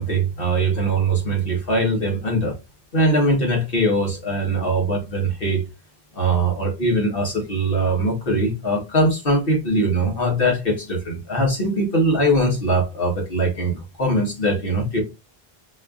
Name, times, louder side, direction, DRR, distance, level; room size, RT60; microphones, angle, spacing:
voice 1, 0.0-2.6 2.9-5.6 6.2-15.0, right 1 dB, 60° left, 1.6 m, -21 dB
4.3 x 3.2 x 2.5 m
omnidirectional pair, 1.0 m